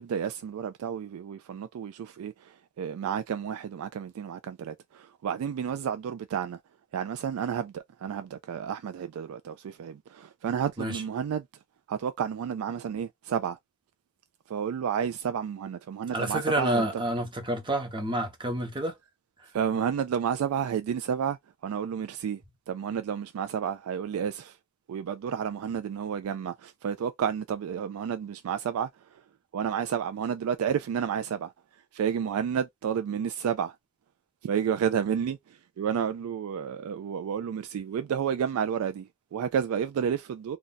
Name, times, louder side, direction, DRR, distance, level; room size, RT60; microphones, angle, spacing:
voice 1, 0.0-6.6 6.9-11.4 11.9-13.6 14.5-17.0 19.5-21.4 21.6-22.4 22.7-24.6 24.9-28.9 29.5-31.5 31.9-33.8 34.4-35.4 35.8-40.6, right 8 dB, 80° right, 0.3 m, -31 dB
voice 2, 16.1-18.9, right 1 dB, 20° right, 0.9 m, -29 dB
2.5 x 2.3 x 3.9 m
head